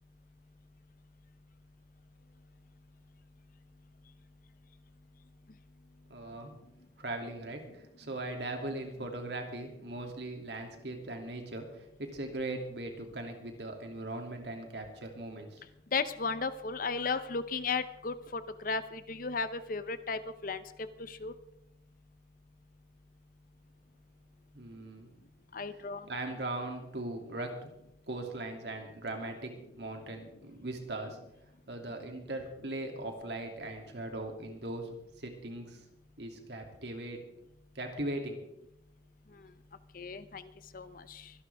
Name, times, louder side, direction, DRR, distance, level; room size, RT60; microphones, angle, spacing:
voice 1, 6.1-6.5 7.0-15.6 24.5-25.1 26.1-27.7 28.1-29.5 29.8-31.2 31.7-34.9 35.2-35.8 36.2-37.2 37.7-38.4, right 2 dB, 70° right, 3 dB, 2.7 m, -39 dB
voice 2, 15.9-20.6 21.0-21.3 25.5-26.1 39.9-40.5 40.7-41.3, left 4 dB, 50° left, 13 dB, 0.8 m, -35 dB
24.5 x 11.5 x 3.5 m, 0.83 s
head